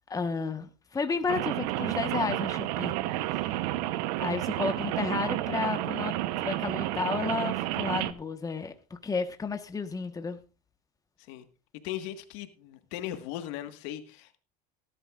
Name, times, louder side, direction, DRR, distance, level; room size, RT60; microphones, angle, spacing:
voice 1, 0.1-2.9 3.3-3.6 4.2-6.1 6.4-8.7 9.0-10.4, left 4 dB, 15° left, 7 dB, 1.3 m, -32 dB
Rain, 1.3-8.1, right 15 dB, 75° right, 0.9 m, -31 dB
voice 2, 11.8-14.4, left 12 dB, 70° left, 8 dB, 1.7 m, -38 dB
17.5 x 11.5 x 2.5 m, 0.32 s
supercardioid pair, 105°, 21 cm